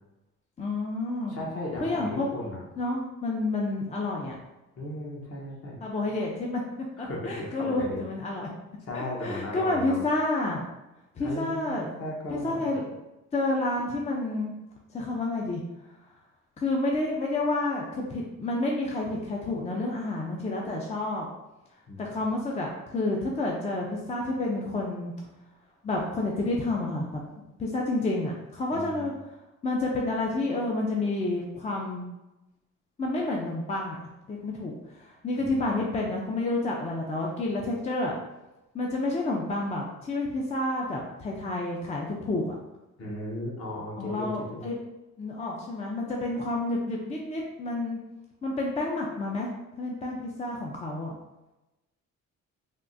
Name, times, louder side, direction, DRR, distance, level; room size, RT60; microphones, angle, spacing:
voice 1, 0.6-1.3 1.8-2.3 2.8-4.4 5.8-8.5 8.9-10.6 11.2-11.9 12.3-12.9 13.3-14.5 14.9-15.6 16.6-21.3 22.0-25.1 25.8-27.2 27.6-29.1 29.6-32.0 33.0-34.0 34.3-38.1 38.7-42.6 44.0-44.8 45.2-48.0 48.4-49.5 49.8-51.2, left 2 dB, 25° left, -1 dB, 0.4 m, -29 dB
voice 2, 1.3-2.6 4.8-5.8 7.0-8.0 8.9-10.0 11.2-12.7 21.9-22.0 28.7-29.1 35.4-35.6 43.0-44.6, left 1 dB, 50° left, -3 dB, 1.0 m, -36 dB
3.5 x 2.4 x 2.6 m, 1.0 s
cardioid pair, 90°, 30 cm